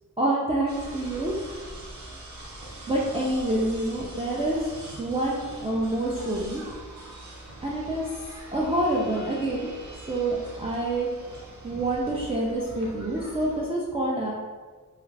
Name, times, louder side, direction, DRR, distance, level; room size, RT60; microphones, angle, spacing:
voice 1, 0.2-1.3 2.9-4.6 5.0-6.6 7.6-8.1 8.5-9.7 10.1-11.1 11.6-14.3, right 1 dB, 15° right, -6 dB, 0.4 m, -27 dB
sound 1, 0.7-13.7, right 1 dB, 55° right, 0.7 m, -43 dB
2.3 x 2.3 x 3.2 m, 1.4 s
wide cardioid pair, 90°, 35 cm